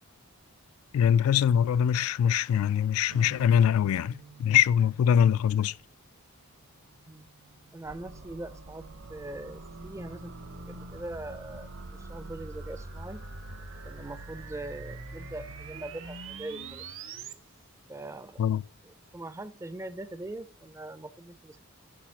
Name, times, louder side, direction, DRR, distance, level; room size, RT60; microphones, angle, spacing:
voice 1, 0.9-5.8 18.4-18.6, left 9 dB, 70° left, 0.3 m, -23 dB
sound 1, 3.1-10.7, right 6 dB, 90° right, 1.2 m, -55 dB
voice 2, 7.7-8.8 9.1-13.3 13.8-16.9 17.9-18.4 18.8-21.6, right 2 dB, 15° right, 0.4 m, -42 dB
sound 2, 7.8-17.3, right 3 dB, 60° right, 0.8 m, -43 dB
8.7 x 4.9 x 5.8 m
head